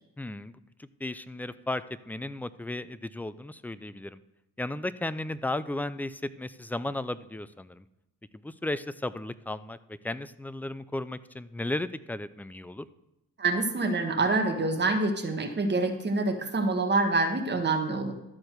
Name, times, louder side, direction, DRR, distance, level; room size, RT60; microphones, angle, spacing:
voice 1, 0.2-0.5 1.0-4.2 4.6-7.8 8.4-12.9, left 2 dB, 5° left, 15 dB, 0.4 m, -35 dB
voice 2, 13.4-18.1, right 3 dB, 35° right, 4 dB, 1.4 m, -26 dB
13.0 x 4.5 x 6.4 m, 0.91 s
cardioid pair, 90°, 30 cm